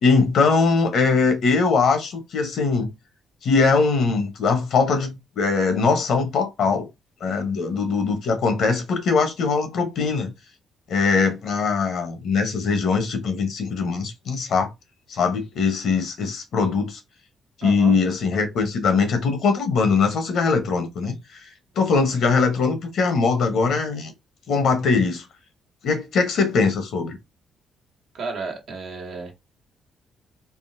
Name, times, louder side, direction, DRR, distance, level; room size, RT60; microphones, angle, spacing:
voice 1, 0.0-2.9 3.4-6.9 7.2-10.3 10.9-14.7 15.1-17.0 17.6-21.4 21.8-24.1 24.5-25.2 25.8-27.2, left 4 dB, 70° left, 0.9 m, -21 dB
voice 2, 17.6-18.0 28.1-29.3, right 3 dB, 65° right, 1.1 m, -32 dB
3.5 x 2.0 x 2.6 m
cardioid pair, 90°, 0 cm